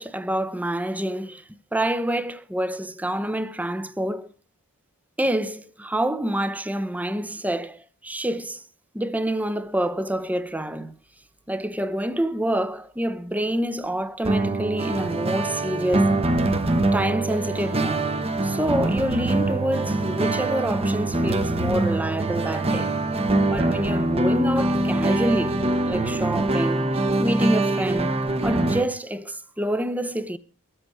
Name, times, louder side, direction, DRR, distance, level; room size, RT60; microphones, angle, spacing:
voice 1, 0.0-1.4 1.7-4.3 5.2-8.6 8.9-10.9 11.5-16.2 16.9-18.1 18.4-22.9 23.5-25.6 25.8-26.9 27.2-30.4, right 1 dB, 5° right, 0.7 m, -27 dB
sound 1, 14.2-28.8, right 2 dB, 25° right, 0.9 m, -23 dB
23.5 x 7.9 x 4.7 m
head